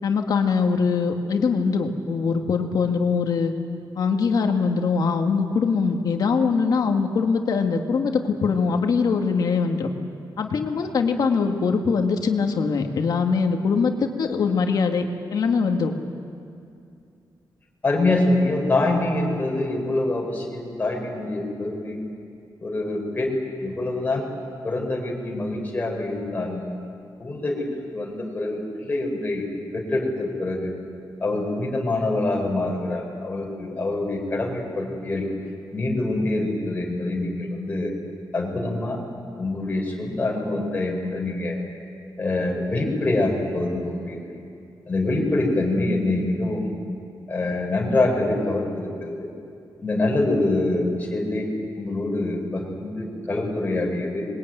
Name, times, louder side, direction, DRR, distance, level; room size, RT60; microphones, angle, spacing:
voice 1, 0.0-3.5 4.0-9.9 10.4-15.0 15.3-15.9, left 5 dB, 60° left, 4 dB, 2.0 m, -22 dB
voice 2, 17.8-22.0 22.6-24.2 24.6-26.6 27.2-27.7 27.9-29.4 29.7-30.7 31.2-35.3 35.7-37.9 38.3-39.0 39.4-41.6 42.2-44.2 44.9-46.7 47.3-49.3 49.8-51.5 51.7-54.3, left 2 dB, 25° left, -1 dB, 4.9 m, -25 dB
26.0 x 21.5 x 9.3 m, 2.5 s
wide cardioid pair, 170°, 7 cm